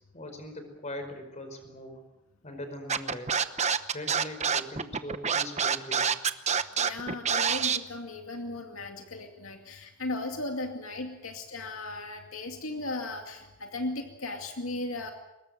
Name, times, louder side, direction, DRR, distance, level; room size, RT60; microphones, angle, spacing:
voice 1, 0.1-2.0 2.4-3.4 3.9-6.1, left 1 dB, 35° left, 7 dB, 5.0 m, -41 dB
Scratching (performance technique), 2.9-7.8, right 6 dB, 35° right, 1.0 m, -26 dB
voice 2, 6.8-15.1, left 2 dB, 80° left, 3 dB, 2.4 m, -36 dB
23.5 x 20.5 x 7.7 m, 0.94 s
head